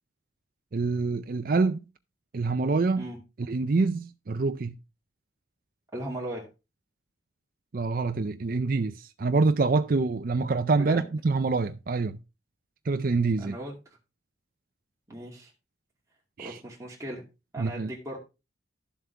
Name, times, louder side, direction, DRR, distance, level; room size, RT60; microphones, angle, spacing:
voice 1, 0.7-1.8 2.3-3.1 3.5-4.8 7.7-12.2 12.9-13.6 16.4-16.6 17.6-17.9, right 3 dB, 45° right, 0.5 m, -26 dB
voice 2, 5.9-6.5 10.8-11.1 13.4-13.8 15.1-15.5 16.4-17.2 17.5-18.2, right 1 dB, 15° right, 2.3 m, -37 dB
11.5 x 7.4 x 3.4 m
head